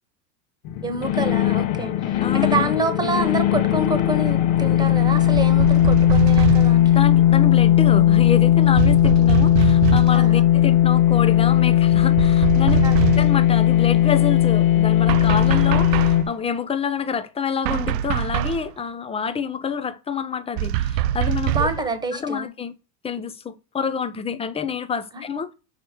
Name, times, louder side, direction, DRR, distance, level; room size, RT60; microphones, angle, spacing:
sound 1, 0.7-16.2, left 12 dB, 55° left, 1.3 m, -17 dB
voice 1, 0.8-7.0 10.1-10.5 12.8-13.0 21.5-22.5 25.1-25.2, right 2 dB, 10° right, 1.4 m, -27 dB
voice 2, 2.2-2.7 6.9-12.8 13.2-21.7 22.1-22.7 23.0-25.5, left 6 dB, 10° left, 0.7 m, -27 dB
sound 2, 5.3-6.8 8.8-10.2 11.9-13.4 15.1-16.3 17.6-18.7 20.6-21.9, right 13 dB, 80° right, 0.6 m, -24 dB
6.6 x 4.5 x 6.3 m
supercardioid pair, 125°, 48 cm